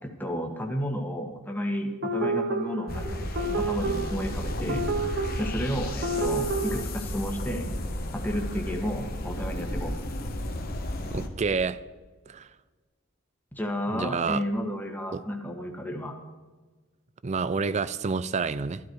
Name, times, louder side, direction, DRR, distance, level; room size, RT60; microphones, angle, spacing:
voice 1, 0.0-3.3 3.6-4.8 5.4-7.7 8.1-9.9 13.5-16.2, equal, 10° left, 2 dB, 1.5 m, -32 dB
sound 1, 2.0-6.8, right 2 dB, 55° right, 0.9 m, -30 dB
sound 2, 2.9-11.3, left 1 dB, 45° left, 1.3 m, -33 dB
voice 2, 11.1-11.8 12.3-12.5 13.9-14.4 15.1-15.2 17.2-18.8, right 5 dB, 35° right, 17 dB, 0.4 m, -28 dB
14.0 x 12.5 x 4.7 m, 1.3 s
head